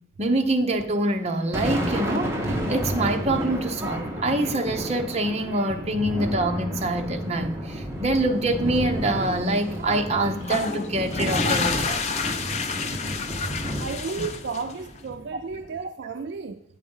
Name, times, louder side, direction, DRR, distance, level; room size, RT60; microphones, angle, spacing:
voice 1, 0.2-12.1, right 1 dB, 35° right, 0.7 m, -25 dB
Thunder, 1.2-15.8, right 1 dB, 15° right, 1.1 m, -31 dB
sound 1, 10.4-15.0, left 5 dB, 35° left, 0.6 m, -29 dB
voice 2, 13.8-16.6, right 5 dB, 60° right, 0.4 m, -33 dB
8.6 x 5.1 x 5.3 m
head